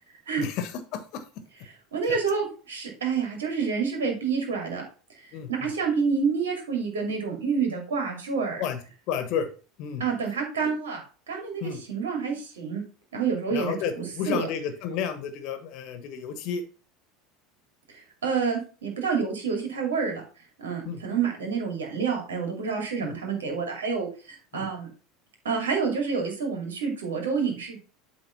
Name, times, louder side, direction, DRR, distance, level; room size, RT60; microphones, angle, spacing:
voice 1, 0.4-1.2 2.1-2.2 5.3-5.7 8.6-8.8 9.1-9.5 9.8-10.0 11.6-11.8 13.5-16.6 20.8-21.0 23.0-23.1 24.5-24.6, left 7 dB, 55° left, 9 dB, 1.2 m, -31 dB
voice 2, 1.9-4.8 5.2-8.6 10.0-11.0 11.3-12.8 13.1-14.5 17.9-20.2 20.6-24.9 25.4-27.8, right 5 dB, 75° right, 2 dB, 2.4 m, -28 dB
8.0 x 3.6 x 5.6 m, 0.36 s
figure-of-eight pair, 75°, 0 cm